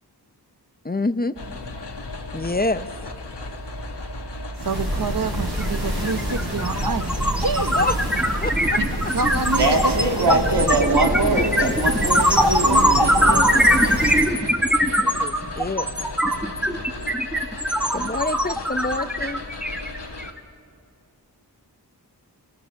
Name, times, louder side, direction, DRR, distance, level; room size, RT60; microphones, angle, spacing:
voice 1, 0.8-1.3 2.3-2.9 7.7-8.0 8.4-8.5 11.0-11.1 12.4-12.8 15.0-15.9 17.9-19.4, left 2 dB, 25° left, 12 dB, 0.6 m, -26 dB
sound 1, 1.4-20.3, left 2 dB, 85° left, 1.4 m, -36 dB
voice 2, 4.6-7.8 8.5-8.8 9.1-10.3 12.7-13.0 14.0-14.6, right 4 dB, 55° right, 10 dB, 0.9 m, -28 dB
sound 2, 4.6-14.4, right 1 dB, 70° right, 4.6 m, -28 dB
sound 3, 5.6-5.8 6.0-20.4, equal, 5° right, 1.4 m, -21 dB
voice 3, 9.6-14.0 16.3-16.9, right 2 dB, 90° right, 1 dB, 2.3 m, -23 dB
29.0 x 17.5 x 7.0 m, 2.4 s
wide cardioid pair, 50°, 40 cm